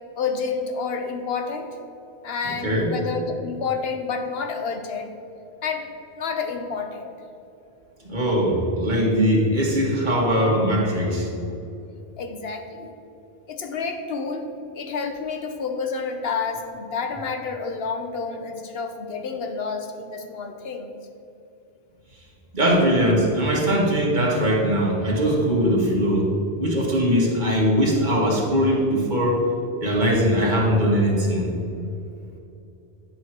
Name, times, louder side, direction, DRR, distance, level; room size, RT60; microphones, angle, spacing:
voice 1, 0.2-1.8 2.2-5.1 5.6-5.9 6.1-7.1 12.2-12.9 13.5-14.5 14.7-21.0, left 5 dB, 70° left, 6 dB, 1.1 m, -29 dB
voice 2, 8.1-11.3 22.5-26.3 26.6-29.4 29.8-31.5, equal, 45° right, -3 dB, 1.8 m, -21 dB
10.5 x 4.8 x 5.9 m, 2.7 s
omnidirectional pair, 1.1 m